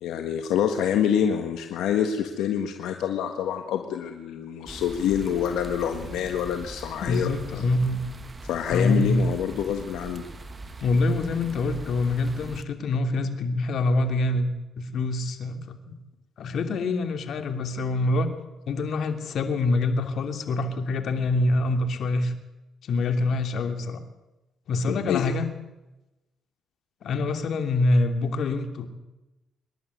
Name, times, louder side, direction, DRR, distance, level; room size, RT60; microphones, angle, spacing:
voice 1, 0.0-7.3 8.4-10.2 24.9-25.3, left 9 dB, 85° left, 5 dB, 1.6 m, -26 dB
sound 1, 4.7-12.6, right 2 dB, 25° right, 1.8 m, -41 dB
voice 2, 7.0-8.0 8.7-9.3 10.8-14.5 14.8-16.0 16.4-18.3 18.7-22.3 22.8-24.0 24.7-25.5 27.0-28.9, left 2 dB, 65° left, 7 dB, 2.9 m, -25 dB
25.5 x 11.5 x 9.6 m, 1.0 s
cardioid pair, 90°, 0 cm